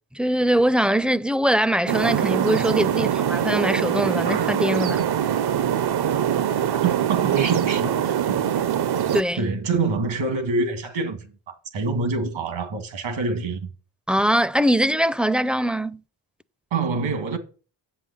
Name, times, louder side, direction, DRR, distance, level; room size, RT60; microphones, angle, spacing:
voice 1, 0.2-5.0 9.1-9.4 14.1-16.0, equal, ahead, 0.5 m, -22 dB
sound 1, 1.9-9.2, right 9 dB, 55° right, 0.7 m, -23 dB
voice 2, 6.7-8.4 9.4-13.7 16.7-17.4, right 4 dB, 80° right, 2.2 m, -26 dB
8.1 x 5.7 x 7.8 m
supercardioid pair, 45°, 46 cm